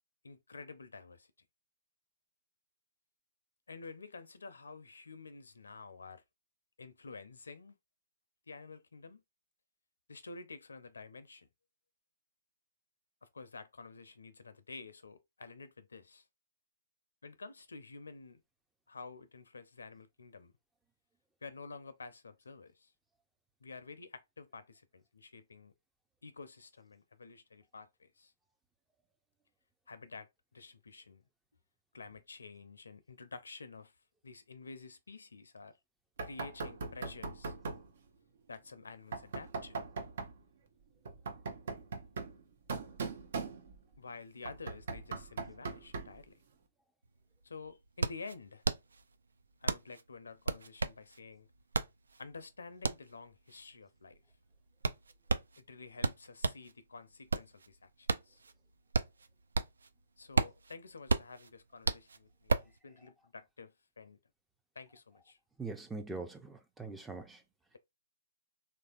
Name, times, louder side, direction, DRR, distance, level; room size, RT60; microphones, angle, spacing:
voice 1, 0.2-1.3 3.7-6.2 6.8-7.8 8.5-9.2 10.1-11.5 13.2-16.2 17.2-18.4 18.9-20.5 21.4-22.9 23.6-25.7 26.2-28.3 29.9-31.2 31.9-33.9 34.2-35.7 36.2-37.5 38.5-39.8 44.0-46.3 47.4-48.6 49.6-51.5 52.2-54.2 55.6-58.4 60.2-64.2 64.8-65.4, left 4 dB, 75° left, 0.5 m, -50 dB
Knock, 36.2-37.9 39.1-40.4 41.0-43.9 44.4-46.2, right 4 dB, 60° right, 0.8 m, -40 dB
sound 1, 47.1-47.2 47.4-56.7 57.1-59.9 60.2-62.8, right 3 dB, 75° right, 0.3 m, -34 dB
voice 2, 65.6-67.4, right 3 dB, 5° right, 0.5 m, -42 dB
3.2 x 2.6 x 2.4 m
figure-of-eight pair, 125°, 0 cm